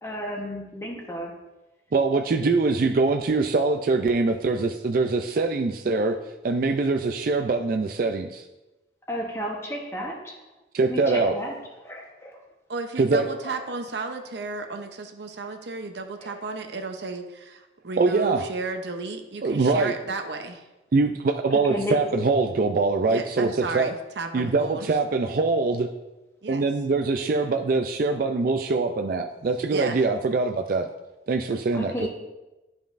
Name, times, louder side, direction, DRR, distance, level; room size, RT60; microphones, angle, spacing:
voice 1, 0.0-1.3 9.1-10.3 10.8-11.5 11.8-12.3 13.4-13.5 16.2-16.3 21.7-21.9 31.7-32.1, equal, 15° left, 0 dB, 1.0 m, -32 dB
voice 2, 1.9-6.2 6.4-8.4 10.7-11.4 13.0-13.3 18.0-18.4 19.4-19.9 20.9-23.9 24.3-25.9 26.5-30.9 31.3-32.1, right 3 dB, 50° right, 5 dB, 0.4 m, -23 dB
voice 3, 12.7-20.7 23.1-24.9 26.4-26.7 29.7-30.1, right 3 dB, 70° right, 6 dB, 0.7 m, -33 dB
11.5 x 5.3 x 2.5 m, 1.0 s
head